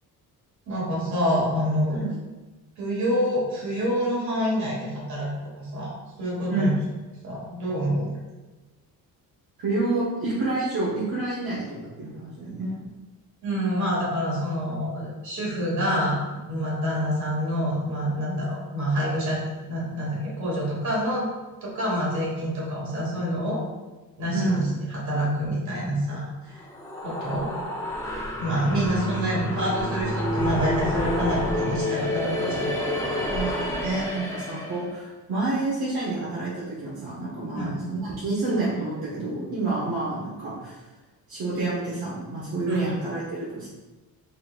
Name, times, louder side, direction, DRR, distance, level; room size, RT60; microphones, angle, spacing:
voice 1, 0.7-2.0 2.8-5.3 5.6-5.9 6.2-6.7 7.2-8.2 13.4-19.4 19.7-21.3 21.6-23.6 24.2-26.6 27.0-27.5 28.4-32.7 37.5-37.8 42.6-42.9, equal, 50° right, -4 dB, 1.5 m, -27 dB
voice 2, 9.6-12.8 24.3-24.7 33.3-40.8 41.3-43.7, right 2 dB, 75° right, -7 dB, 1.1 m, -28 dB
sound 1, 26.5-34.9, left 1 dB, 10° left, 0.5 m, -29 dB
4.2 x 3.6 x 2.4 m, 1.2 s
cardioid pair, 160°, 37 cm